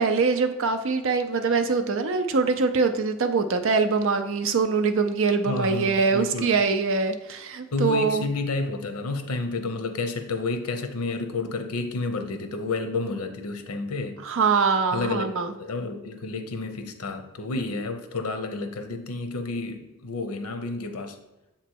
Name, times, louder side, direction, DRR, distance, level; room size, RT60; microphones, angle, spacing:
voice 1, 0.0-8.3 14.2-15.5, right 4 dB, 60° right, 8 dB, 0.5 m, -23 dB
voice 2, 5.5-6.6 7.7-14.2 14.9-21.2, left 3 dB, 80° left, 7 dB, 0.7 m, -30 dB
7.0 x 3.0 x 4.5 m, 1.0 s
head